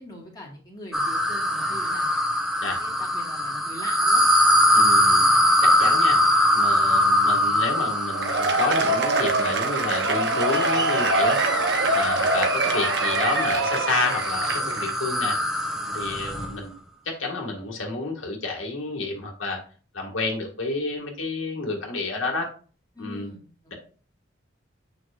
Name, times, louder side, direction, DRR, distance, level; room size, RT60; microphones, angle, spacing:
voice 1, 0.0-2.1 2.6-4.2 22.9-23.7, left 1 dB, 20° left, -3 dB, 1.9 m, -42 dB
sound 1, 0.9-16.6, equal, ahead, 0.6 m, -23 dB
voice 2, 4.7-5.3 5.6-6.2 6.5-11.4 11.9-15.4 15.9-16.7 17.1-19.6 19.9-22.5 23.0-23.3, left 3 dB, 90° left, 0 dB, 2.0 m, -30 dB
Cheering / Applause / Crowd, 8.1-14.9, right 2 dB, 55° right, 0.9 m, -24 dB
7.5 x 6.0 x 2.5 m, 0.40 s
head